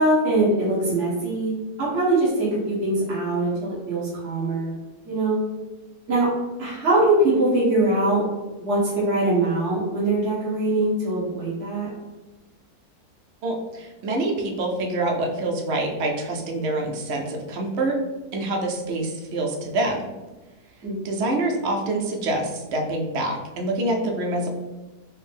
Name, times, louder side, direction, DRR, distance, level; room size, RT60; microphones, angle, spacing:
voice 1, 0.0-1.5 1.8-4.7 5.1-5.4 6.1-6.3 6.6-8.2 8.6-11.9 20.8-21.0, right 2 dB, 40° right, -9 dB, 1.4 m, -22 dB
voice 2, 13.4-18.0 18.3-20.1 21.0-24.5, right 2 dB, 65° right, 1 dB, 0.7 m, -26 dB
4.4 x 2.1 x 3.4 m, 1.2 s
omnidirectional pair, 1.8 m